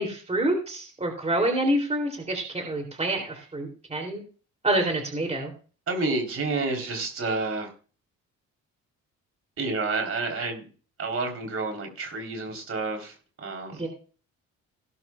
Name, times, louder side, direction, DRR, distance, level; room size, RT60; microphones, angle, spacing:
voice 1, 0.0-4.2 4.6-5.5 13.7-13.9, right 1 dB, 20° right, 2 dB, 3.2 m, -27 dB
voice 2, 5.9-7.7 9.6-10.7 11.0-13.9, right 3 dB, 50° right, 3 dB, 3.9 m, -29 dB
17.5 x 12.0 x 2.4 m, 0.38 s
cardioid pair, 90°, 30 cm